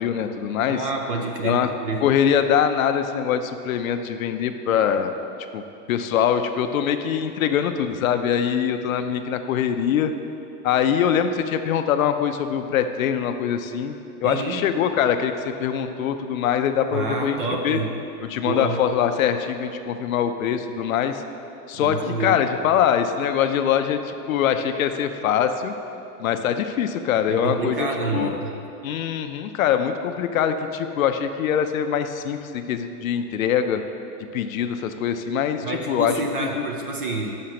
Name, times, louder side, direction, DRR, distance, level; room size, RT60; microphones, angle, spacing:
voice 1, 0.0-0.8 1.4-1.7 2.0-5.1 5.5-10.1 10.6-14.0 14.2-17.8 18.3-21.2 21.7-25.7 26.2-27.9 28.1-28.3 28.8-33.8 34.3-36.6, left 8 dB, 60° left, 8 dB, 0.5 m, -23 dB
voice 2, 0.7-2.1 14.2-14.6 16.9-17.9 18.4-18.8 21.7-22.4 27.3-28.5 35.6-37.4, right 3 dB, 35° right, 2 dB, 0.4 m, -28 dB
6.4 x 5.8 x 5.8 m, 2.7 s
supercardioid pair, 175°, 48 cm